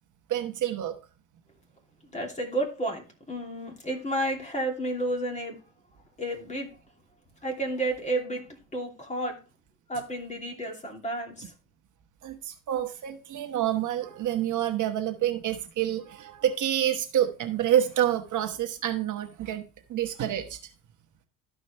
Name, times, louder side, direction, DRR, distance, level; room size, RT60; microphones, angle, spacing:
voice 1, 0.3-0.9 12.2-20.7, right 11 dB, 50° right, 1.1 m, -28 dB
voice 2, 2.1-5.6 6.2-6.7 7.4-8.5 8.7-9.4 9.9-11.5, right 1 dB, 20° left, 2.9 m, -31 dB
13.0 x 5.2 x 3.3 m
supercardioid pair, 95°, 38 cm